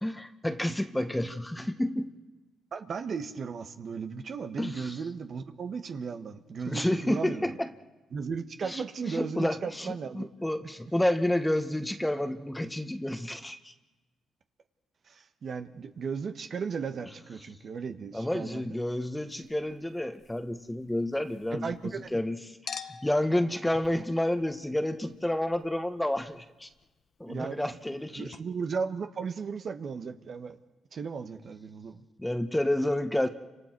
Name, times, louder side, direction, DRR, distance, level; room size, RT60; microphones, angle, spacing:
voice 1, 0.0-2.1 4.6-4.8 6.7-7.7 8.6-13.7 18.1-21.7 22.1-22.4 23.0-26.7 27.2-28.3 32.2-33.3, left 1 dB, 10° left, 8 dB, 1.5 m, -30 dB
voice 2, 2.7-7.6 8.1-10.3 15.1-18.8 21.5-22.1 27.3-27.6 28.2-30.6 30.9-32.0, right 5 dB, 55° right, 6 dB, 1.5 m, -36 dB
Chink clink, 19.3-22.2 22.7-28.0 28.3-28.4, left 6 dB, 60° left, 1.2 m, -49 dB
29.5 x 26.0 x 4.7 m, 1.2 s
supercardioid pair, 60°, 0 cm